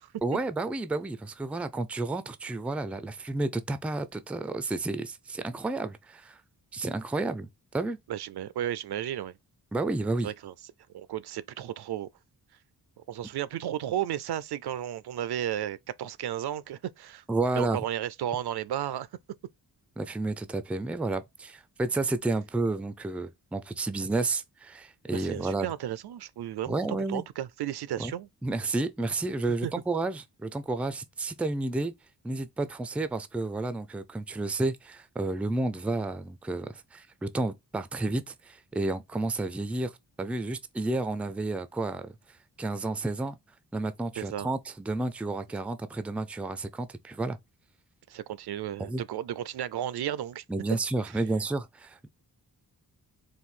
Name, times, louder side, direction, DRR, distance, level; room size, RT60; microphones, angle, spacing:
voice 1, 0.2-6.4 6.7-7.5 7.7-8.0 9.7-10.3 17.3-17.8 20.0-25.7 26.7-27.2 28.0-28.1 28.4-31.9 32.2-42.2 42.6-43.4 43.7-47.4 48.8-49.0 50.5-52.1, right 2 dB, 5° right, 0.3 m, -31 dB
voice 2, 8.1-9.4 10.2-10.5 10.9-12.1 13.1-19.1 25.1-28.3 29.6-29.7 44.2-44.5 48.1-50.4, right 11 dB, 80° right, 0.5 m, -33 dB
4.3 x 2.6 x 3.6 m
wide cardioid pair, 140°, 39 cm